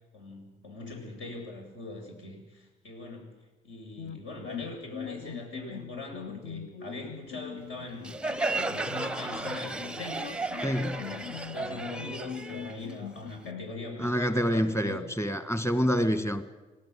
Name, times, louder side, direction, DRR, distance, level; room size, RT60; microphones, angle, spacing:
voice 1, 0.1-3.3 3.6-8.2 8.5-10.4 10.7-15.1, left 2 dB, 75° left, 1 dB, 7.7 m, -42 dB
sound 1, 4.0-13.7, left 8 dB, 55° left, 1.0 m, -42 dB
Crowd, 8.0-13.5, right 2 dB, 5° right, 0.7 m, -34 dB
voice 2, 10.6-11.0 14.0-16.4, equal, 15° left, 11 dB, 1.6 m, -27 dB
25.5 x 17.5 x 8.2 m, 1.1 s
cardioid pair, 90°, 20 cm